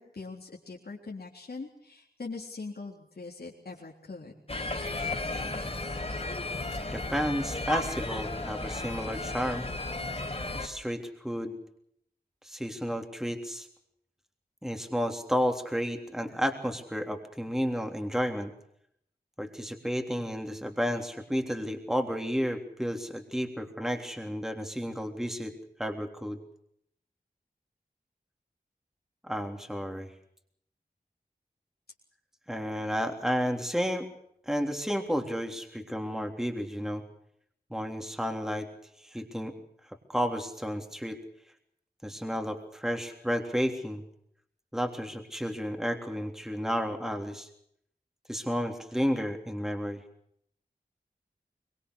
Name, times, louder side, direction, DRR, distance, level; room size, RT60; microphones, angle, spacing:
voice 1, 0.0-4.3, left 3 dB, 75° left, -3 dB, 3.7 m, -42 dB
sound 1, 4.5-10.7, left 2 dB, 40° left, 4.1 m, -34 dB
voice 2, 6.9-9.7 10.5-11.6 12.4-13.7 14.6-18.5 19.4-25.5 25.8-26.4 29.2-30.1 32.5-34.1 34.4-37.0 37.7-38.7 39.0-39.5 39.9-41.2 42.0-44.0 44.7-47.5 48.3-50.0, equal, 5° right, 4 dB, 3.4 m, -32 dB
24.0 x 23.0 x 6.4 m, 0.70 s
wide cardioid pair, 60°, 16 cm